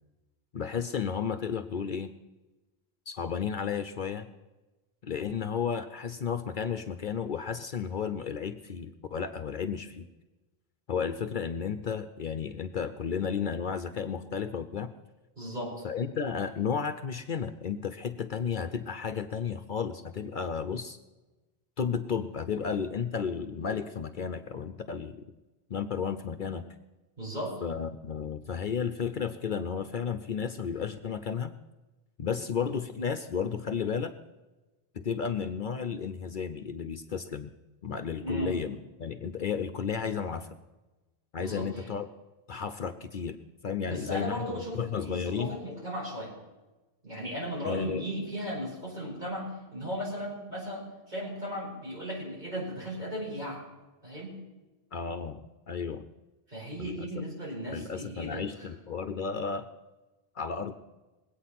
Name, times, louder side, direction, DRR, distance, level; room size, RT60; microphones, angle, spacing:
voice 1, 0.5-2.1 3.1-4.3 5.0-10.1 10.9-14.9 15.8-21.0 21.8-25.3 25.7-26.7 27.6-31.5 32.2-34.1 34.9-37.5 37.8-40.5 41.3-42.1 42.5-43.4 43.6-44.4 44.8-45.6 47.6-48.0 54.9-56.1 56.8-57.0 57.7-59.7 60.4-60.7, left 6 dB, 55° left, 10 dB, 0.8 m, -33 dB
voice 2, 15.4-15.8 27.2-27.6 38.2-38.6 41.4-41.9 43.9-46.3 47.0-53.6 54.0-54.4 56.5-58.4, equal, 45° right, -4 dB, 5.2 m, -36 dB
21.0 x 8.6 x 5.8 m, 1.1 s
omnidirectional pair, 1.0 m